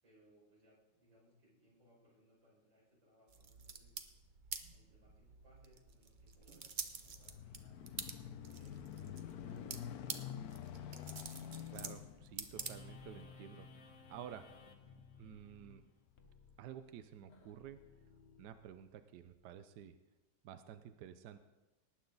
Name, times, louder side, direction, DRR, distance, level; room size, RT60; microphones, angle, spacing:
voice 1, 0.0-4.0 4.7-7.9 8.5-10.2, equal, 90° right, -6 dB, 6.4 m, -69 dB
sound 1, 3.3-13.2, right 5 dB, 50° right, 0.5 m, -49 dB
sound 2, 6.7-15.5 16.1-16.2, left 9 dB, 65° left, 1.1 m, -49 dB
voice 2, 11.7-14.5 15.2-15.8 16.6-17.8 18.4-19.9 20.4-21.4, right 9 dB, 70° right, 10 dB, 1.1 m, -52 dB
sound 3, 12.5-19.3, left 4 dB, 45° left, 1.1 m, -60 dB
19.0 x 9.0 x 4.0 m, 1.1 s
omnidirectional pair, 2.0 m